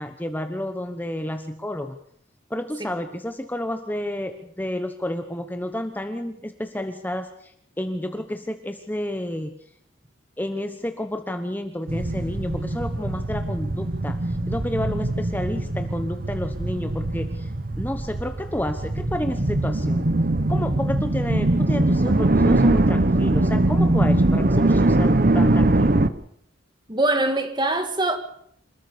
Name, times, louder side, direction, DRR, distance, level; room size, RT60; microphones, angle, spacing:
voice 1, 0.0-2.0 2.5-9.6 10.4-17.5 17.8-20.1 20.5-26.0, left 1 dB, 10° left, 1.0 m, -30 dB
sound 1, 11.9-26.1, right 2 dB, 45° right, 1.0 m, -22 dB
voice 2, 26.9-28.2, right 2 dB, 25° right, 2.0 m, -22 dB
27.0 x 14.0 x 6.8 m
head